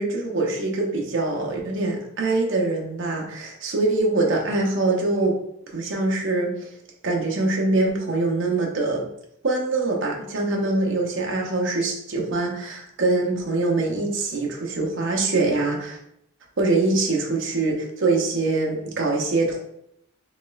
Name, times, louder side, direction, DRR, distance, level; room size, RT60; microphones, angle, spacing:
voice 1, 0.0-5.4 5.7-6.5 7.0-9.1 9.4-16.0 16.6-19.6, right 2 dB, 60° right, 0 dB, 0.7 m, -23 dB
4.1 x 3.0 x 2.5 m, 0.74 s
head